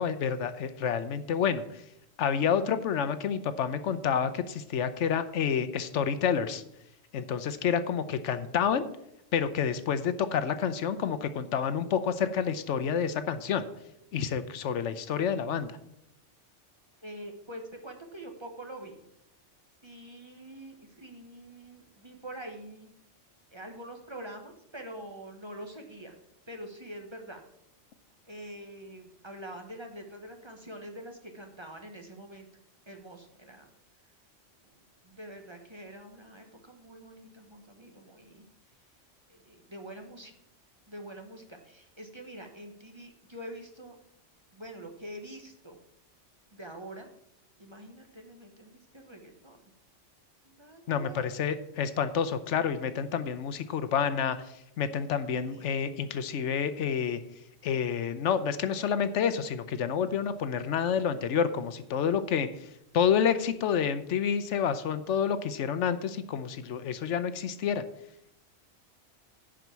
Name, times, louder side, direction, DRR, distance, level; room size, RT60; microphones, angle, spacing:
voice 1, 0.0-1.8 2.2-6.6 7.1-8.8 9.3-13.7 14.1-15.8 50.9-57.2 57.6-67.8, left 7 dB, 80° left, 12 dB, 1.0 m, -29 dB
voice 2, 17.0-19.0 19.8-22.9 23.5-26.2 26.5-27.4 28.3-32.5 32.9-33.7 34.6-34.7 35.0-38.4 39.3-40.3 40.9-44.0 44.5-45.8 46.5-47.1 47.6-49.7 50.4-51.3 55.3-55.7, right 1 dB, 25° right, 3 dB, 1.2 m, -45 dB
10.5 x 5.0 x 6.8 m, 0.80 s
omnidirectional pair, 1.2 m